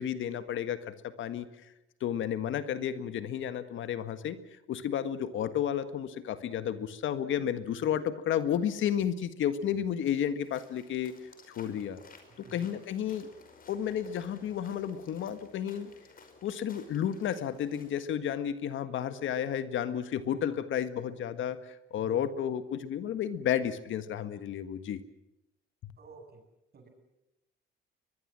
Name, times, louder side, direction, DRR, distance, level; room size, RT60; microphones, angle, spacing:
voice 1, 0.0-1.7 2.0-4.4 4.7-11.1 11.5-12.0 12.5-13.3 13.7-15.9 16.4-25.0 25.8-25.9, left 9 dB, 75° left, 11 dB, 1.7 m, -32 dB
sound 1, 10.4-18.1, left 4 dB, 45° left, 5.5 m, -56 dB
voice 2, 12.3-12.8 20.4-20.7 22.0-22.3 26.0-26.4 26.7-26.9, right 4 dB, 55° right, 5 dB, 7.9 m, -53 dB
22.5 x 22.0 x 7.7 m, 0.90 s
cardioid pair, 90°, 20 cm